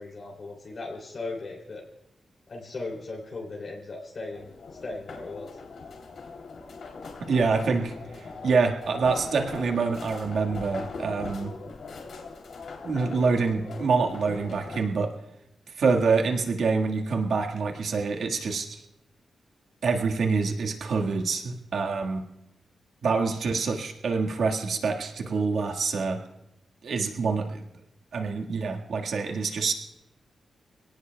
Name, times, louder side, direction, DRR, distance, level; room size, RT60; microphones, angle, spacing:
voice 1, 0.0-1.8 2.5-4.5 4.8-5.6, left 3 dB, 45° left, -1 dB, 2.9 m, -37 dB
sound 1, 4.3-14.8, left 4 dB, 70° left, 3.0 m, -40 dB
voice 2, 7.2-11.5 12.8-15.1 15.8-18.8 19.8-22.3 23.0-26.2 26.8-27.7 28.1-29.7, right 4 dB, 70° right, 2 dB, 1.6 m, -26 dB
26.5 x 18.0 x 2.3 m, 0.88 s
wide cardioid pair, 140°, 0 cm